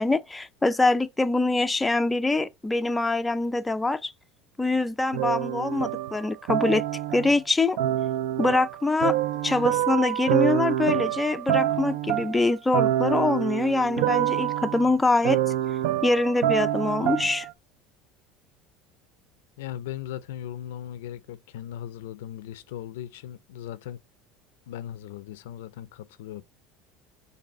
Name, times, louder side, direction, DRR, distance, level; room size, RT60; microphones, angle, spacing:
voice 1, 0.0-4.1 4.6-6.8 7.1-7.8 8.4-9.2 9.4-15.4 16.0-17.5, left 2 dB, 10° left, 0.3 m, -24 dB
sound 1, 5.1-7.4 7.8-17.5, right 12 dB, 80° right, 0.4 m, -26 dB
voice 2, 19.6-24.0 24.7-26.4, left 11 dB, 85° left, 0.4 m, -38 dB
5.0 x 2.6 x 4.1 m
supercardioid pair, 105°, 0 cm